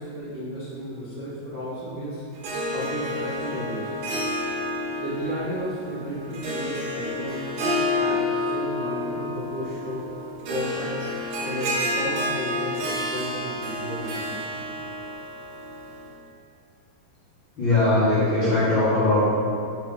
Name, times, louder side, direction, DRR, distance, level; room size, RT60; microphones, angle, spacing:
voice 1, 0.0-2.2 2.7-4.2 5.0-10.1 10.4-11.0 11.4-14.6, equal, 55° right, -12 dB, 1.1 m, -33 dB
Harp, 2.3-16.1, left 1 dB, 80° right, 1.5 m, -30 dB
voice 2, 17.6-19.2, left 2 dB, 45° left, -12 dB, 1.7 m, -20 dB
7.4 x 5.6 x 3.9 m, 2.5 s
omnidirectional pair, 4.4 m